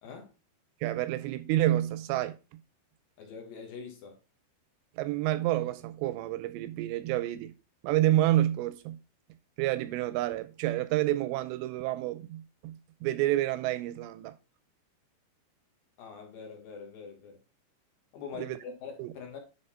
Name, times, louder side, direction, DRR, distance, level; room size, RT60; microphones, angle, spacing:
voice 1, 0.0-0.3 3.2-4.2 16.0-17.4 18.1-19.4, left 5 dB, 65° left, 2.6 m, -44 dB
voice 2, 0.8-2.4 5.0-7.5 7.8-9.0 9.6-14.4 18.3-18.6 19.0-19.1, right 14 dB, 85° right, 2.5 m, -29 dB
9.9 x 4.1 x 4.3 m
omnidirectional pair, 5.4 m